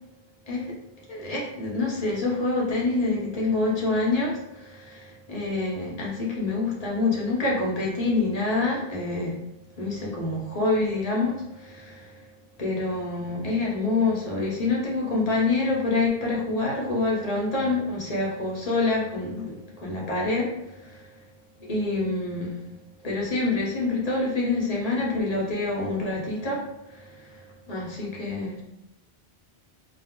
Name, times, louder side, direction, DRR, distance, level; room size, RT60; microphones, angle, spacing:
voice 1, 1.1-9.4 9.8-12.1 12.6-21.1 21.6-22.6 23.0-26.6 26.9-28.6, left 3 dB, 40° left, -3 dB, 0.7 m, -27 dB
2.4 x 2.0 x 3.5 m, 0.88 s
omnidirectional pair, 1.1 m